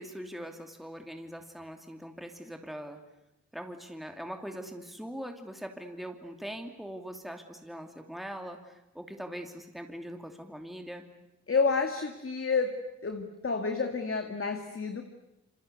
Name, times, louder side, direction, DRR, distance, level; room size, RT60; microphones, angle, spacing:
voice 1, 0.0-3.0 3.5-11.1, equal, ahead, 4 dB, 2.8 m, -42 dB
voice 2, 11.5-15.0, left 4 dB, 45° left, 5 dB, 2.2 m, -30 dB
27.5 x 25.0 x 8.3 m, 0.93 s
cardioid pair, 65°, 29 cm